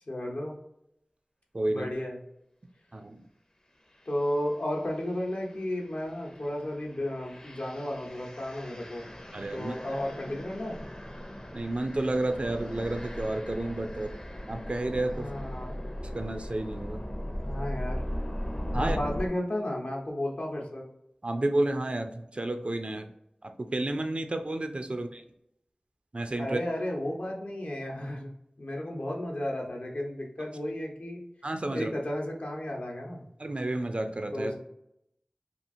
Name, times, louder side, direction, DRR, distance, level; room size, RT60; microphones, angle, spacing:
voice 1, 0.1-0.6 1.7-2.2 4.1-9.0 9.5-10.8 15.1-15.8 17.4-18.0 18.7-20.9 24.9-25.0 26.4-28.3 28.6-31.2 31.7-33.3 34.3-34.6, left 1 dB, 75° left, -1 dB, 0.7 m, -33 dB
voice 2, 1.5-1.9 2.9-3.2 9.3-9.8 11.5-14.2 14.5-15.3 16.1-17.0 18.7-19.0 21.2-23.1 23.4-25.2 26.1-26.6 31.4-31.9 33.4-34.5, right 2 dB, 50° right, 7 dB, 0.4 m, -31 dB
sound 1, 4.0-4.3 4.8-19.3, equal, 25° left, 0.5 m, -38 dB
2.9 x 2.4 x 2.6 m, 0.79 s
wide cardioid pair, 40°, 2 cm